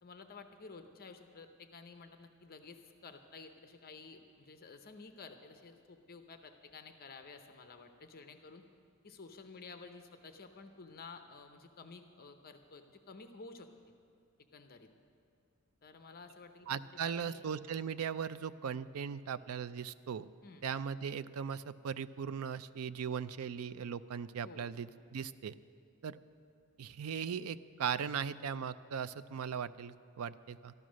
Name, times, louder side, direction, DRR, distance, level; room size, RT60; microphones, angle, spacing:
voice 1, 0.0-8.6 9.0-13.7 14.5-14.9 15.8-16.7 17.0-17.4 20.4-20.6 24.4-24.7, left 4 dB, 45° left, 7 dB, 0.7 m, -52 dB
voice 2, 16.7-20.3 20.6-25.5 26.0-26.2 26.8-30.7, right 7 dB, 70° right, 14 dB, 0.4 m, -38 dB
13.5 x 12.5 x 6.3 m, 2.3 s
head